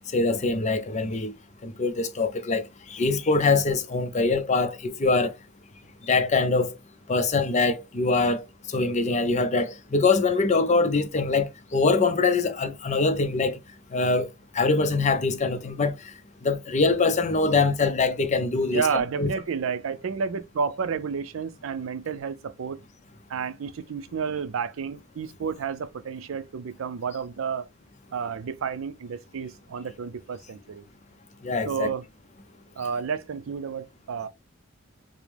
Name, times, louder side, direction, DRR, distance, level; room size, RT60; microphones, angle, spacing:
voice 1, 0.1-1.3 1.6-5.3 6.0-6.8 7.1-13.6 13.9-14.3 14.5-16.0 16.4-18.8 19.2-19.3 31.4-31.9, left 3 dB, 35° left, 0.6 m, -23 dB
voice 2, 18.7-22.8 23.3-27.7 28.1-30.8 31.6-32.0 32.8-34.3, right 6 dB, 75° right, 0.4 m, -31 dB
4.9 x 2.1 x 3.3 m
head